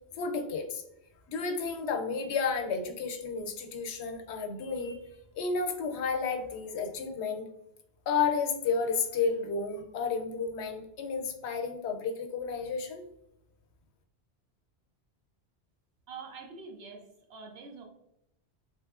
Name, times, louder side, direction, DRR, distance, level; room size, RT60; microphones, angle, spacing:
voice 1, 0.2-0.8 1.3-5.0 5.4-7.5 8.1-13.0, left 5 dB, 85° left, 4 dB, 0.9 m, -32 dB
voice 2, 16.1-17.9, right 4 dB, 70° right, 3 dB, 0.8 m, -45 dB
3.3 x 3.1 x 2.3 m, 0.82 s
omnidirectional pair, 1.1 m